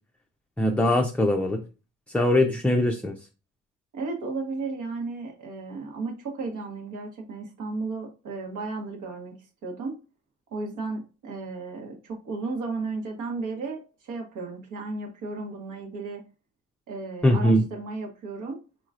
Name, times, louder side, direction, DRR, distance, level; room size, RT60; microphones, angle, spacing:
voice 1, 0.6-1.6 2.1-3.2 17.2-17.6, left 1 dB, 5° left, 0.3 m, -21 dB
voice 2, 3.9-9.4 9.6-10.0 10.5-16.2 16.9-18.6, right 3 dB, 80° right, 1.2 m, -34 dB
3.9 x 3.0 x 2.4 m
cardioid pair, 90°, 30 cm